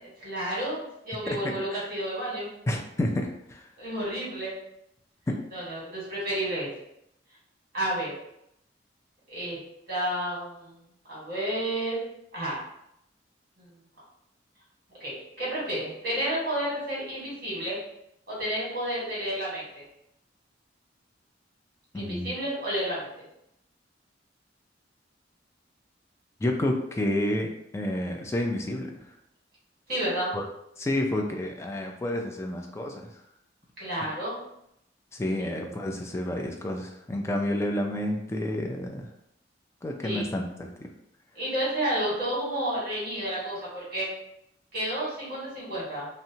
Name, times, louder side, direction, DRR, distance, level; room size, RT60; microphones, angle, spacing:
voice 1, 0.0-2.5 3.8-4.5 5.5-6.7 7.7-8.1 9.3-9.6 9.9-10.8 11.1-12.0 12.3-12.6 13.6-13.8 15.0-17.8 18.3-19.8 21.9-23.1 29.9-30.3 33.8-34.4 35.4-35.5 40.0-40.3 41.3-44.1 44.7-46.1, right 1 dB, 55° right, -7 dB, 1.4 m, -31 dB
voice 2, 1.3-1.9 2.7-3.7 21.9-22.3 26.4-27.5 27.7-28.9 30.3-30.5 30.8-33.1 35.1-39.1 39.8-40.9, left 1 dB, 15° left, 2 dB, 0.3 m, -30 dB
2.7 x 2.1 x 2.7 m, 0.78 s
head